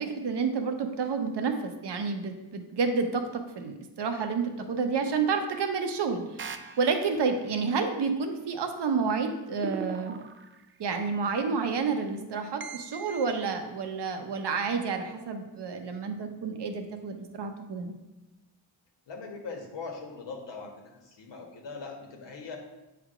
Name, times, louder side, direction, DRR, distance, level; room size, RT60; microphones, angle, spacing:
voice 1, 0.0-10.2 10.8-17.9, right 5 dB, 70° right, 5 dB, 0.9 m, -30 dB
sound 1, 6.4-7.4 9.6-10.8 12.6-13.3, right 5 dB, 30° right, 0.3 m, -40 dB
voice 2, 19.1-22.6, left 4 dB, 80° left, 1 dB, 1.4 m, -41 dB
7.8 x 3.4 x 4.9 m, 1.0 s
wide cardioid pair, 120°, 43 cm